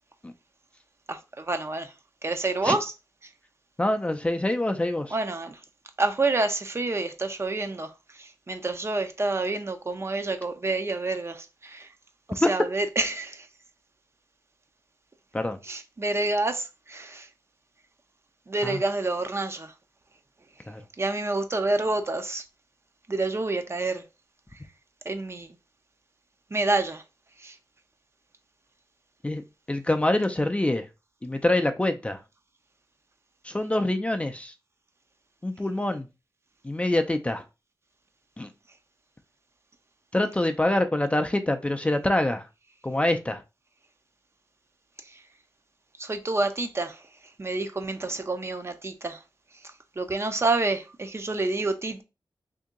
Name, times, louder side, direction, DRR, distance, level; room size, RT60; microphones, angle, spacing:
voice 1, 1.1-1.9 2.2-2.9 5.1-5.6 6.0-11.9 12.3-13.5 15.6-17.3 18.5-19.7 21.0-22.4 23.1-24.0 24.5-24.6 25.0-25.6 26.5-27.0 27.4-27.6 45.0-45.2 46.0-47.1 47.4-49.2 49.6-52.0, right 2 dB, 35° right, 0.5 m, -28 dB
voice 2, 3.8-5.1 12.4-12.5 15.3-15.6 18.6-18.8 20.7-20.8 29.2-29.4 29.7-30.9 31.2-32.2 33.4-34.5 35.4-36.1 36.6-37.4 38.4-38.5 40.1-42.5 42.8-43.4, left 1 dB, 15° left, 0.4 m, -25 dB
2.8 x 2.7 x 3.7 m
cardioid pair, 65°, 8 cm